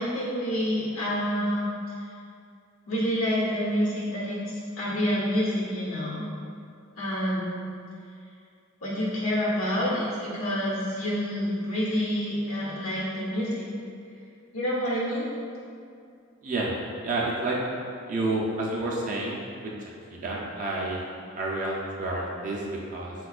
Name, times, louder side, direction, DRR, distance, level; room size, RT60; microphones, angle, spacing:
voice 1, 0.0-1.7 2.0-2.1 2.9-6.2 7.0-7.6 8.8-13.7 14.5-15.3, equal, 85° left, -6 dB, 0.9 m, -28 dB
voice 2, 16.4-17.6 18.1-19.7 20.1-21.0 21.3-23.1, right 2 dB, 40° right, -3 dB, 0.3 m, -30 dB
4.2 x 2.2 x 2.3 m, 2.4 s
head